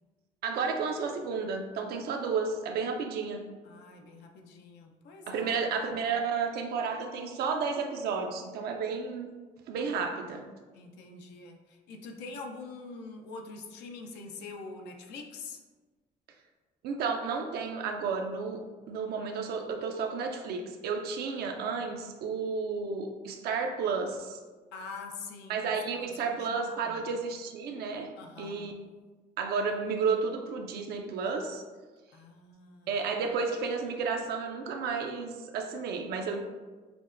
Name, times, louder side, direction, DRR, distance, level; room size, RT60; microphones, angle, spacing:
voice 1, 0.4-3.4 5.3-9.3 9.7-10.5 16.8-24.4 25.5-28.7 29.4-31.6 32.9-36.4, right 5 dB, 70° right, 3 dB, 0.4 m, -32 dB
voice 2, 3.6-5.5 10.7-15.6 24.7-25.7 26.0-27.0 28.2-28.7 32.1-33.0, left 4 dB, 85° left, 4 dB, 0.5 m, -45 dB
5.8 x 2.1 x 2.5 m, 1.3 s
cardioid pair, 110°, 17 cm